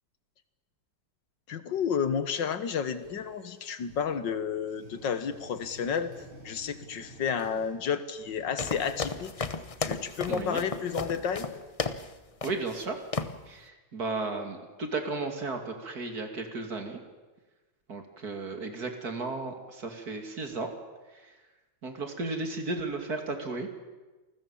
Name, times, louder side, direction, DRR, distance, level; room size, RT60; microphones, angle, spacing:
voice 1, 1.5-6.1 6.4-9.3 9.8-11.5, left 7 dB, 65° left, 12 dB, 2.0 m, -31 dB
sound 1, 2.8-4.3 4.7-7.8 8.1-12.0, right 1 dB, 90° right, 9.0 m, -53 dB
sound 2, 8.6-12.1 12.4-12.8 13.1-13.4, left 4 dB, 50° left, 0.4 m, -34 dB
voice 2, 10.3-10.6 12.4-13.0 13.5-17.0 17.9-20.7 21.1-21.3 21.8-23.8, right 3 dB, 50° right, 5 dB, 3.2 m, -34 dB
28.5 x 20.5 x 7.2 m, 1.2 s
omnidirectional pair, 2.1 m